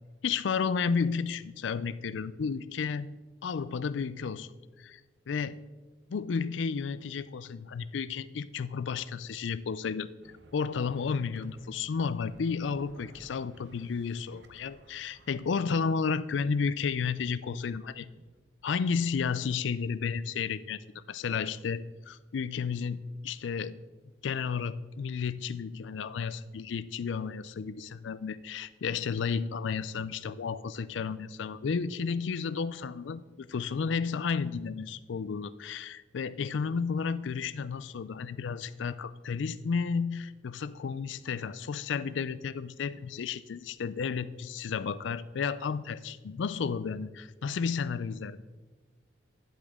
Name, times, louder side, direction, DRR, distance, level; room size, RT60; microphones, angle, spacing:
voice 1, 0.2-3.1 3.4-4.5 4.8-5.0 5.3-5.6 6.1-10.1 10.5-18.1 18.6-20.8 21.1-23.8 24.2-48.4, left 5 dB, 75° left, 15 dB, 0.4 m, -32 dB
sound 1, 10.2-18.6, right 2 dB, 65° right, 0.8 m, -59 dB
10.5 x 8.1 x 3.6 m, 1.3 s
head